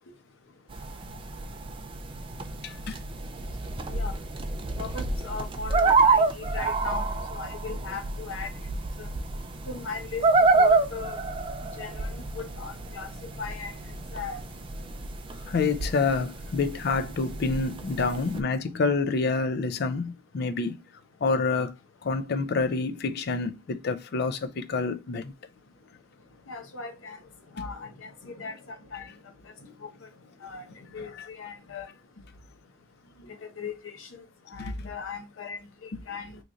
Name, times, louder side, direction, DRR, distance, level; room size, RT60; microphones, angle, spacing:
sound 1, 0.7-18.4, right 3 dB, 25° right, 0.4 m, -28 dB
voice 1, 2.6-3.0 15.5-20.8 21.2-21.7 22.0-25.3 27.6-27.7 28.9-29.0 31.0-31.3 33.2-33.3 34.6-34.9 35.9-36.0, left 4 dB, 55° left, 0.4 m, -28 dB
voice 2, 4.8-8.5 9.0-9.1 9.7-10.3 10.6-11.2 11.8-13.7 14.1-14.4 26.5-27.2 27.5-29.1 29.8-29.9 30.4-30.6 30.9-31.9 33.6-34.2 34.5-36.4, left 5 dB, 90° left, 0.8 m, -38 dB
3.0 x 2.5 x 3.7 m
head